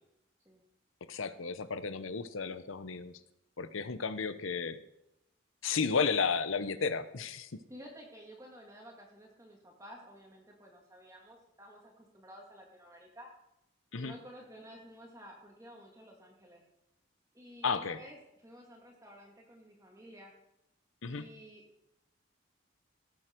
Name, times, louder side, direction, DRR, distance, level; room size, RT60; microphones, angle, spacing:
voice 1, 1.1-3.1 3.6-4.8 5.6-7.5 13.9-14.1 17.6-18.0 21.0-21.2, left 5 dB, 85° left, 13 dB, 0.8 m, -33 dB
voice 2, 7.7-13.3 13.9-16.6 17.3-20.3 21.1-21.6, equal, 15° right, 0 dB, 2.1 m, -52 dB
17.5 x 7.7 x 4.6 m, 0.85 s
head